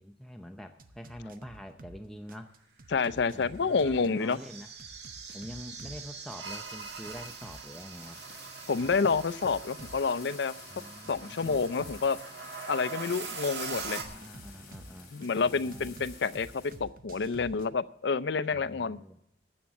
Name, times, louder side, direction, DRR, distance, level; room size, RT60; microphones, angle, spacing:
voice 1, 0.0-2.5 3.3-4.7 5.3-8.2 10.7-11.6 14.0-15.9 18.5-19.2, equal, ahead, 4 dB, 0.6 m, -45 dB
sound 1, 0.8-2.0 2.3-6.0 6.3-10.0 10.3-12.1 13.7-15.3 15.7-17.7, right 2 dB, 50° right, 0.8 m, -49 dB
voice 2, 2.9-4.4 8.7-10.5 11.1-12.2 12.7-14.0 15.1-16.5 16.8-19.0, left 5 dB, 75° left, 15 dB, 0.5 m, -28 dB
sound 2, 3.1-14.0, right 5 dB, 75° right, 1.9 m, -43 dB
sound 3, 8.0-16.8, left 4 dB, 55° left, 5.7 m, -50 dB
13.0 x 7.7 x 7.2 m, 0.77 s
head